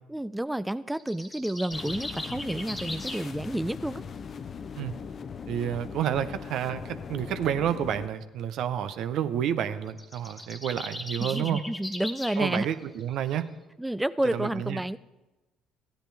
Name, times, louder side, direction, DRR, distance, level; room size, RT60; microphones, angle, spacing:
voice 1, 0.1-4.0 11.2-12.7 13.8-15.0, right 1 dB, 10° right, 15 dB, 0.3 m, -30 dB
sound 1, 1.0-3.3 9.9-12.4, left 2 dB, 20° left, 1.5 m, -38 dB
sound 2, 1.7-8.1, left 6 dB, 45° left, 0.6 m, -40 dB
voice 2, 5.5-11.6 12.4-13.5 14.3-14.8, right 9 dB, 65° right, 11 dB, 0.7 m, -30 dB
15.0 x 10.0 x 3.4 m, 1.1 s
hypercardioid pair, 65°, 0 cm